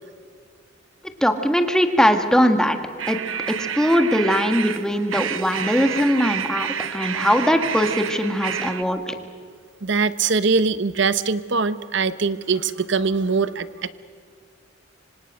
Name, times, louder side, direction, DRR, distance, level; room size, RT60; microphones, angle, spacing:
voice 1, 1.2-2.8 3.1-3.2 3.6-9.1, equal, 5° left, 6 dB, 1.6 m, -20 dB
sound 1, 3.0-8.8, right 8 dB, 85° right, 1.0 m, -29 dB
voice 2, 9.8-13.9, right 4 dB, 60° right, 14 dB, 1.0 m, -22 dB
26.0 x 25.5 x 6.5 m, 2.2 s
head